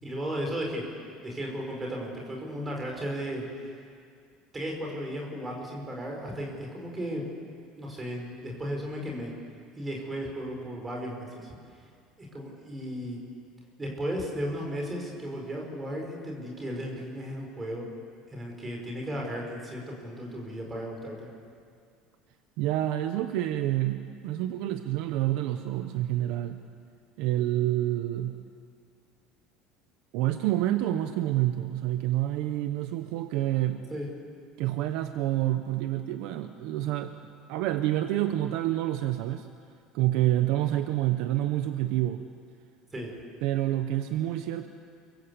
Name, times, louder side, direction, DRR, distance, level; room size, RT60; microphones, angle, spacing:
voice 1, 0.0-0.8 1.2-3.7 4.5-7.2 7.8-9.3 9.8-11.5 12.2-13.2 13.8-17.9 18.3-21.3 33.9-34.1 42.9-43.1, equal, 10° right, 0 dB, 5.0 m, -35 dB
voice 2, 22.6-26.6 27.2-28.4 30.1-33.8 34.6-37.1 37.5-39.5 39.9-42.2 43.4-44.7, right 14 dB, 55° right, 8 dB, 1.0 m, -28 dB
29.0 x 22.5 x 8.3 m, 2.2 s
cardioid pair, 180°, 0 cm